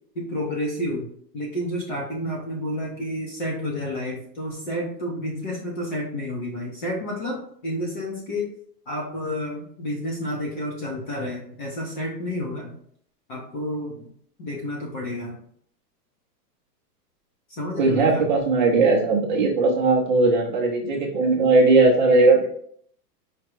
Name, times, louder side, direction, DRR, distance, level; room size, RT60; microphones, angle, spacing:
voice 1, 0.1-1.1 1.3-8.5 8.9-12.8 13.3-14.1 14.4-15.4 17.5-18.3, left 1 dB, 30° left, -2 dB, 0.7 m, -30 dB
voice 2, 17.8-22.5, right 3 dB, 30° right, -1 dB, 0.6 m, -18 dB
5.0 x 2.2 x 4.4 m, 0.63 s
supercardioid pair, 180°, 49 cm